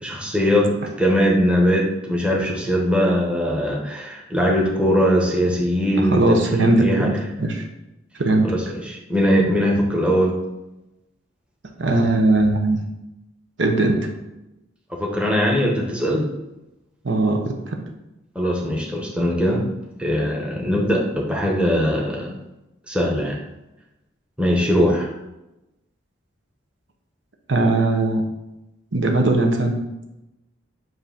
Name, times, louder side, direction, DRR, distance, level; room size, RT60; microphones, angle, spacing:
voice 1, 0.0-7.1 8.4-10.3 15.0-16.2 18.3-19.6 20.0-22.3 22.9-23.4 24.4-25.1, equal, 5° right, -2 dB, 1.0 m, -21 dB
voice 2, 6.1-7.1 7.4-7.6 8.2-8.5 11.8-12.8 13.6-14.1 17.0-17.8 27.5-28.2 28.9-29.8, right 2 dB, 65° right, 3 dB, 0.9 m, -19 dB
7.7 x 2.7 x 5.7 m, 0.95 s
head